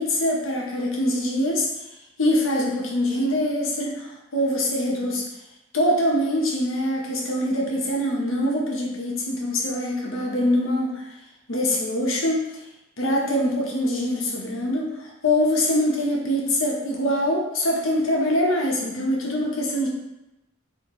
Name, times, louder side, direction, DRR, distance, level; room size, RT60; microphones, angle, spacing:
voice 1, 0.0-1.7 2.2-5.2 5.7-11.1 11.5-12.4 13.0-19.9, left 1 dB, 80° left, -2 dB, 1.1 m, -24 dB
4.3 x 3.7 x 3.1 m, 0.90 s
head